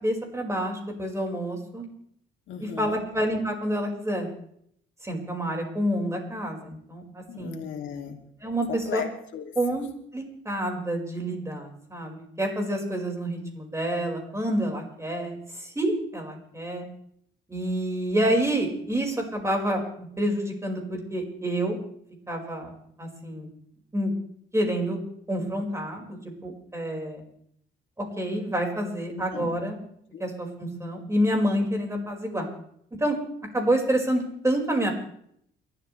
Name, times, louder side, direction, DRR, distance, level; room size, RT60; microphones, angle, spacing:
voice 1, 0.0-1.9 2.6-4.3 5.0-7.6 8.4-9.0 9.6-9.8 10.1-16.9 17.5-19.8 20.2-21.8 22.3-22.7 23.0-23.5 23.9-24.1 24.5-25.0 25.3-27.2 28.0-29.8 30.2-32.5 33.0-33.2 33.5-34.9, right 1 dB, 15° right, 1 dB, 5.2 m, -28 dB
voice 2, 2.5-3.0 7.3-8.3 8.7-9.5 29.1-29.6 30.1-30.2, left 8 dB, 80° left, 3 dB, 2.7 m, -36 dB
29.0 x 13.0 x 3.3 m, 0.68 s
cardioid pair, 90°, 20 cm